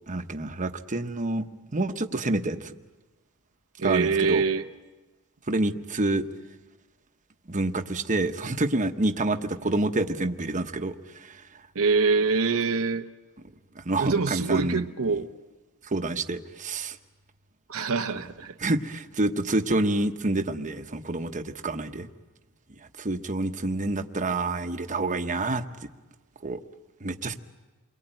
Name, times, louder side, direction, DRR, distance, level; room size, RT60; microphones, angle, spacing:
voice 1, 0.1-1.4 1.7-2.7 3.8-4.4 5.5-6.2 7.5-11.5 13.7-14.8 15.8-17.0 18.6-22.1 23.0-25.9 26.4-26.6 27.0-27.3, right 2 dB, 35° right, 7 dB, 1.1 m, -28 dB
voice 2, 3.8-4.6 11.7-13.0 14.0-15.3 17.7-18.5, right 4 dB, 65° right, 6 dB, 0.8 m, -24 dB
29.0 x 22.5 x 9.0 m, 1.2 s
head